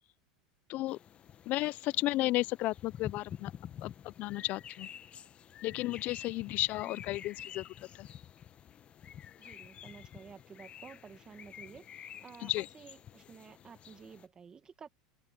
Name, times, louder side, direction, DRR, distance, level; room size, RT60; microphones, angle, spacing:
sound 1, 0.9-14.3, left 9 dB, 35° left, 1.1 m, -49 dB
voice 1, 1.5-3.5 3.8-4.9 5.6-8.1 12.4-12.7, left 18 dB, 50° left, 0.5 m, -33 dB
voice 2, 6.9-7.3 9.4-14.9, right 6 dB, 25° right, 1.7 m, -53 dB
open air
supercardioid pair, 110°, 3 cm